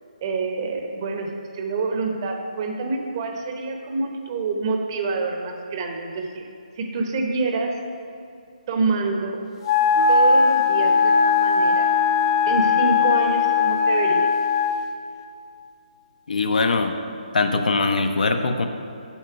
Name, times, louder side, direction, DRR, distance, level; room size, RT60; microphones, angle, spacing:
voice 1, 0.2-6.5 6.8-7.7 8.7-9.4 10.1-11.9 12.5-14.3, right 3 dB, 30° right, 3 dB, 0.8 m, -27 dB
Wind instrument woodwind instrument, 9.6-14.9, left 6 dB, 30° left, 0.6 m, -19 dB
Wind instrument woodwind instrument 2, 9.9-14.8, right 5 dB, 60° right, 0.4 m, -33 dB
voice 2, 16.3-17.0 17.3-18.7, left 3 dB, 65° left, 6 dB, 0.7 m, -21 dB
7.2 x 5.2 x 5.8 m, 2.5 s
hypercardioid pair, 160°, 5 cm